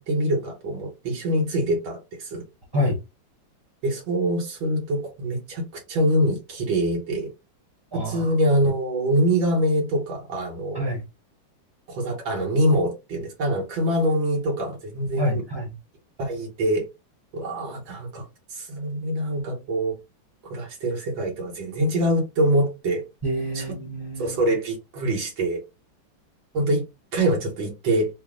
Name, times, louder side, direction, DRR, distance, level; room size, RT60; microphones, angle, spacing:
voice 1, 0.0-2.4 3.8-7.3 7.9-10.9 11.9-15.4 16.2-16.9 17.3-18.3 18.5-20.0 20.4-23.0 23.6-23.7 24.2-25.6 26.5-26.9 27.1-28.1, right 1 dB, 85° right, 2.0 m, -24 dB
voice 2, 7.9-8.3 10.7-11.0 15.2-15.7 23.2-24.5, equal, 20° right, 0.8 m, -27 dB
3.9 x 2.1 x 3.7 m
omnidirectional pair, 2.1 m